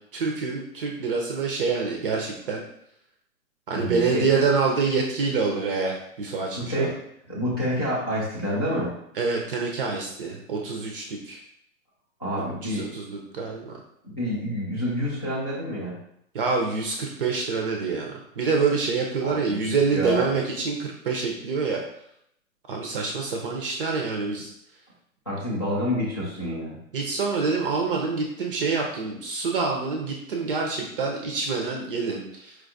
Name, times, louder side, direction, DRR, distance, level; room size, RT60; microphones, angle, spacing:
voice 1, 0.1-2.6 3.7-6.9 9.1-11.4 12.6-13.7 16.3-21.8 22.7-24.5 26.9-32.6, right 4 dB, 40° right, 1 dB, 0.5 m, -26 dB
voice 2, 3.7-4.4 6.6-7.0 7.3-9.0 12.2-12.9 14.0-16.0 19.2-20.3 25.3-26.7, equal, 20° left, -8 dB, 0.3 m, -28 dB
4.5 x 2.3 x 2.6 m, 0.75 s
figure-of-eight pair, 125°, 42 cm